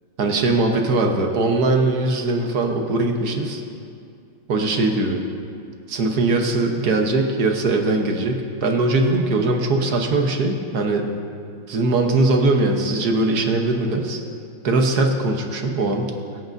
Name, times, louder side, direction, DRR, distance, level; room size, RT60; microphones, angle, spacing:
voice 1, 0.2-3.6 4.5-5.2 5.9-11.1 11.7-14.2 14.6-16.1, right 2 dB, 55° right, 3 dB, 1.3 m, -20 dB
22.5 x 8.6 x 2.6 m, 2.4 s
omnidirectional pair, 2.2 m